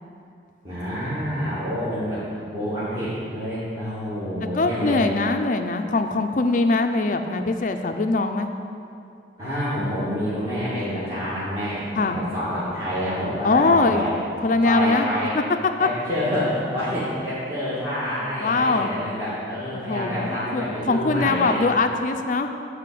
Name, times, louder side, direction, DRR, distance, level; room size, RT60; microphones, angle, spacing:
voice 1, 0.6-2.3 2.5-5.0 9.4-14.1 14.6-15.3 15.8-21.6, equal, 25° right, -14 dB, 2.3 m, -27 dB
voice 2, 4.5-8.5 11.9-12.2 13.4-14.0 14.4-15.1 15.8-15.9 18.4-18.9 19.9-22.5, left 3 dB, 45° left, 6 dB, 0.5 m, -22 dB
9.8 x 4.9 x 7.6 m, 2.5 s
head